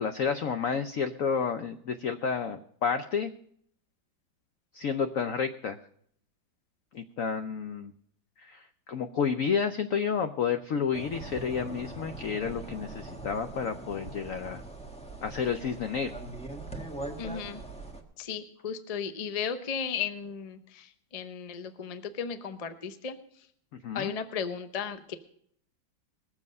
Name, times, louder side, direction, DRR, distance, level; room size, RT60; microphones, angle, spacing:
voice 1, 0.0-3.3 4.7-5.8 6.9-7.9 8.4-14.6 15.2-16.2 23.8-24.1, left 6 dB, 80° left, 9 dB, 0.7 m, -30 dB
sound 1, 10.9-18.0, right 2 dB, 5° left, 1.1 m, -41 dB
voice 2, 17.2-17.6 18.2-23.2 23.9-25.1, left 7 dB, 55° left, 10 dB, 0.4 m, -35 dB
20.5 x 7.4 x 5.3 m, 0.64 s
omnidirectional pair, 2.2 m